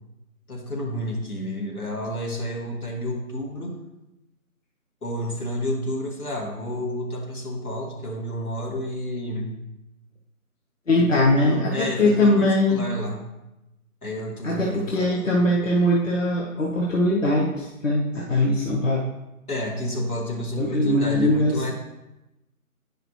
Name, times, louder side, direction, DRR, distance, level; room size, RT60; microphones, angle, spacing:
voice 1, 0.5-3.8 5.0-9.6 11.0-13.2 14.0-15.4 19.5-21.7, left 1 dB, 75° left, -1 dB, 2.0 m, -30 dB
voice 2, 10.9-12.8 14.4-19.0 20.6-21.7, left 1 dB, 60° left, -2 dB, 1.1 m, -21 dB
9.4 x 4.9 x 3.1 m, 0.95 s
figure-of-eight pair, 160°, 44 cm